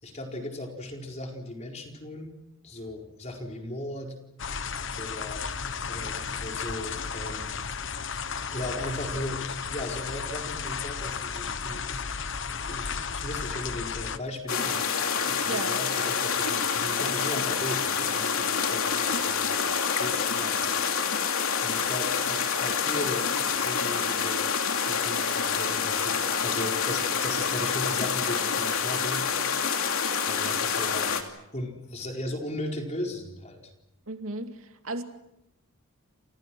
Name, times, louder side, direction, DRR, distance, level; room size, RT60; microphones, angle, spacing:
voice 1, 0.0-2.4 2.6-4.1 5.0-7.5 8.5-20.7 21.6-24.5 24.9-29.2 30.3-31.1 31.5-33.7, left 1 dB, 30° left, 2 dB, 4.5 m, -37 dB
sound 1, 4.4-14.2, left 6 dB, 55° left, 1.2 m, -34 dB
sound 2, 14.5-31.2, left 6 dB, 75° left, 2.9 m, -27 dB
voice 2, 15.5-15.8 34.1-35.0, right 2 dB, 75° right, 6 dB, 2.4 m, -34 dB
29.0 x 28.5 x 6.2 m, 0.88 s
head